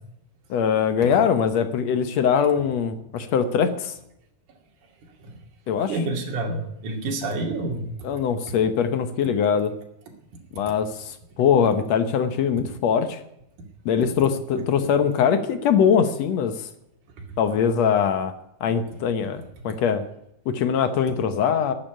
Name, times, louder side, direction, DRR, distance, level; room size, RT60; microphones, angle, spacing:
voice 1, 0.5-4.0 5.7-6.0 8.0-9.7 10.5-13.2 13.9-16.7 17.4-18.3 18.6-20.0 20.5-21.7, left 7 dB, 65° left, 10 dB, 2.0 m, -22 dB
voice 2, 5.7-7.9, right 2 dB, 70° right, 1 dB, 3.8 m, -28 dB
13.0 x 8.8 x 10.0 m, 0.80 s
omnidirectional pair, 3.7 m